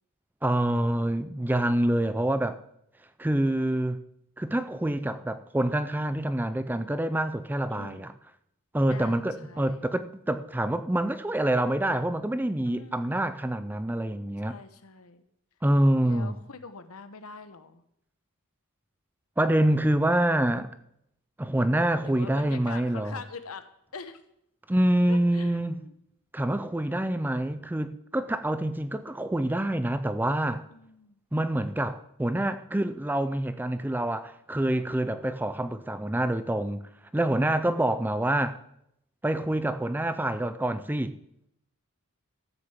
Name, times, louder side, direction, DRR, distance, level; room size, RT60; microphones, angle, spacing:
voice 1, 0.4-2.6 3.2-4.0 4.4-8.1 8.7-14.5 15.6-16.4 19.4-20.7 21.4-23.2 24.7-25.8 26.3-30.6 31.3-36.8 37.1-38.6 39.2-41.2, right 1 dB, 10° right, 0.4 m, -26 dB
voice 2, 7.7-8.1 8.9-9.9 12.6-13.3 14.4-15.2 16.0-17.8 22.0-24.2 25.1-25.9 30.7-31.2 37.4-37.9, left 4 dB, 75° left, 1.1 m, -44 dB
13.5 x 6.6 x 7.3 m
head